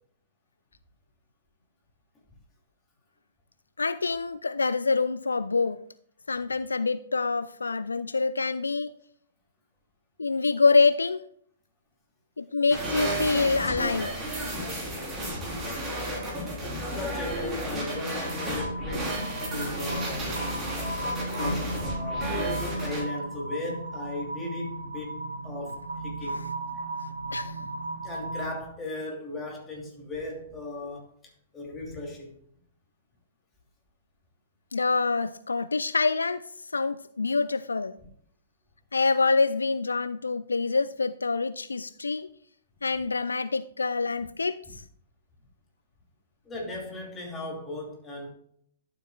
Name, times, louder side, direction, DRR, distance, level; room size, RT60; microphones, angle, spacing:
voice 1, 3.8-5.8 6.3-8.9 10.2-11.2 12.4-14.1 27.3-27.6 34.7-36.4 36.7-38.0 38.9-42.3 42.8-44.6, left 4 dB, 75° left, 0.3 m, -26 dB
sound 1, 12.7-23.0, right 1 dB, 20° right, 3.6 m, -32 dB
voice 2, 16.5-19.2 19.5-20.2 20.7-22.3 22.7-26.4 26.7-26.9 27.6-27.7 28.0-32.3 46.4-48.3, left 2 dB, 15° left, 2.8 m, -37 dB
sound 2, 17.7-28.6, right 1 dB, 80° right, 2.5 m, -35 dB
12.0 x 7.5 x 2.3 m
figure-of-eight pair, 115°, 0 cm